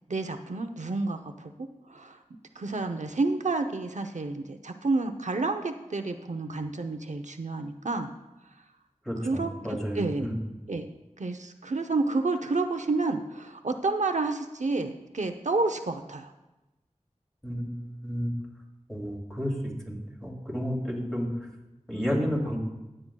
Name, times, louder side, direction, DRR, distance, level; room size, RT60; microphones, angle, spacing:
voice 1, 0.1-1.5 1.9-2.2 2.6-8.1 9.2-9.5 9.9-10.3 10.7-10.9 11.2-16.3, right 3 dB, 75° right, 6 dB, 0.7 m, -29 dB
voice 2, 9.0-10.3 17.4-18.3 18.9-21.3 21.9-22.6, equal, 5° left, -3 dB, 2.6 m, -31 dB
17.0 x 7.7 x 2.3 m, 1.0 s
wide cardioid pair, 55°, 12 cm